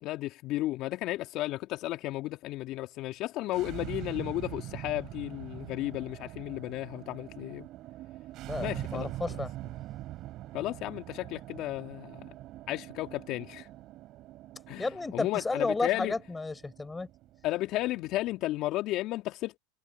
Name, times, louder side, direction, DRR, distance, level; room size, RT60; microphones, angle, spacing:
voice 1, 0.0-7.7 8.6-9.1 10.5-12.3 12.7-13.7 14.7-14.9 15.1-16.1 17.4-19.6, left 17 dB, 50° left, 2.0 m, -33 dB
sound 1, 3.4-18.4, right 15 dB, 50° right, 6.3 m, -43 dB
voice 2, 8.5-9.5 14.8-17.1, left 3 dB, 15° left, 5.5 m, -32 dB
hypercardioid pair, 90°, 0 cm